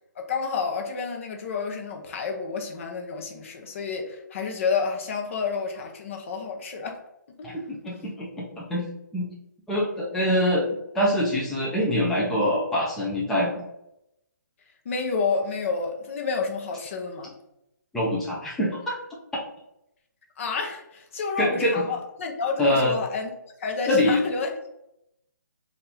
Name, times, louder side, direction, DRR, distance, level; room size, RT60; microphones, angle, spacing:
voice 1, 0.2-7.0 7.4-7.5 14.8-17.3 20.4-24.7, left 5 dB, 40° left, 3 dB, 0.7 m, -30 dB
voice 2, 7.8-8.9 9.1-9.3 9.7-10.6 10.9-13.6 17.9-19.0 21.4-21.9 22.6-22.9 23.9-24.2, left 1 dB, 5° left, -6 dB, 0.5 m, -24 dB
4.2 x 2.5 x 3.4 m, 0.82 s
figure-of-eight pair, 150°, 10 cm